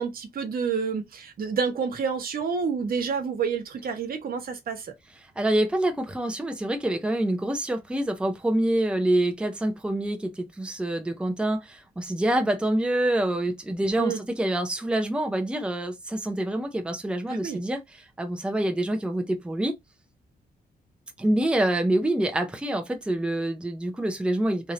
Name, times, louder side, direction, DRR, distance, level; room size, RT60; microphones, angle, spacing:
voice 1, 0.0-4.9 14.0-14.2 17.3-17.6, right 6 dB, 60° right, 1.2 m, -29 dB
voice 2, 5.4-19.7 21.2-24.7, right 1 dB, 5° right, 0.6 m, -26 dB
3.2 x 2.7 x 3.8 m
wide cardioid pair, 140°, 17 cm